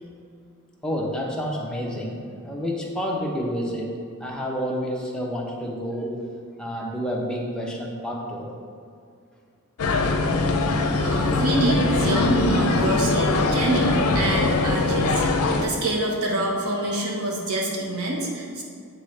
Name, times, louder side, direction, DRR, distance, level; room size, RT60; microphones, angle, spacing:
voice 1, 0.8-6.2 6.5-8.5, equal, 5° left, -3 dB, 0.7 m, -29 dB
sound 1, 9.8-15.7, left 3 dB, 85° left, 0.5 m, -22 dB
voice 2, 11.0-18.6, right 1 dB, 90° right, -1 dB, 1.1 m, -26 dB
8.9 x 3.8 x 3.2 m, 2.3 s
head